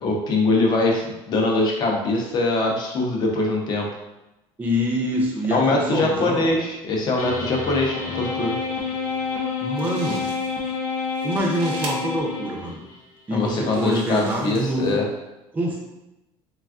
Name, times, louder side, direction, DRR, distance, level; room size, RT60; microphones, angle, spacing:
voice 1, 0.0-3.9 5.5-8.6 13.3-15.1, left 2 dB, 40° left, 0 dB, 0.6 m, -22 dB
voice 2, 4.6-6.5 9.6-10.3 11.2-12.8 13.3-15.0 15.5-15.8, equal, 15° right, -2 dB, 0.5 m, -25 dB
sound 1, 7.2-13.0, left 5 dB, 85° left, 0.5 m, -28 dB
sound 2, 9.4-9.5 9.8-10.7 11.0-11.9 12.7-12.8 13.5-15.0, right 3 dB, 55° right, 0.6 m, -40 dB
3.3 x 2.3 x 2.4 m, 0.95 s
cardioid pair, 155°, 11 cm